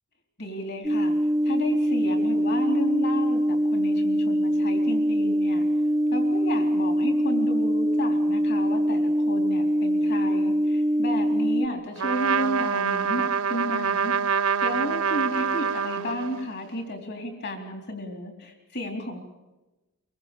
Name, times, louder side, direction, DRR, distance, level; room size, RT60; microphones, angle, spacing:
voice 1, 0.4-1.1 1.4-5.6 6.1-14.2 14.6-19.2, equal, 50° left, 4 dB, 3.9 m, -33 dB
sound 1, 0.8-11.7, equal, 15° right, 0.8 m, -23 dB
Trumpet, 12.0-16.5, right 6 dB, 70° right, 0.8 m, -26 dB
24.0 x 23.5 x 6.9 m, 1.0 s
head